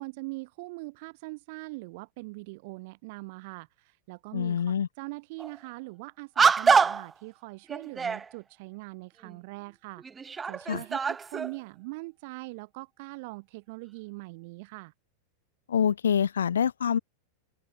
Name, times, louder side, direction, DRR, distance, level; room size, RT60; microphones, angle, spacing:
voice 1, 0.0-10.0 10.5-14.9, right 25 dB, 50° right, 6.5 m, -42 dB
voice 2, 4.3-4.9 10.7-10.8 15.7-17.0, left 8 dB, 65° left, 1.2 m, -25 dB
sound 1, 5.4-5.6 6.4-7.1 7.7-8.3 9.3-9.4 10.0-11.6, right 5 dB, 15° right, 3.5 m, -25 dB
open air
figure-of-eight pair, 90°, 0 cm